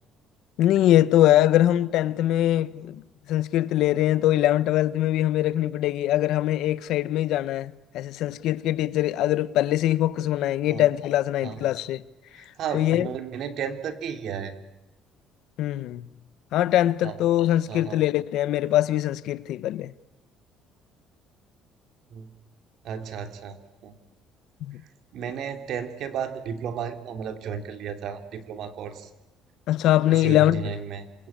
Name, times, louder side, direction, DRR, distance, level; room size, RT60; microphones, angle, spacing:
voice 1, 0.6-3.0 3.3-12.0 12.7-13.1 15.6-16.1 16.5-19.9 24.6-24.8 29.7-30.7, left 13 dB, 65° left, 1.0 m, -22 dB
voice 2, 12.4-14.5 17.0-17.2 17.7-18.0 22.1-22.3 22.8-23.9 25.1-29.1 30.0-31.1, right 7 dB, 55° right, 2.6 m, -33 dB
27.5 x 22.5 x 8.7 m
cardioid pair, 160°, 0 cm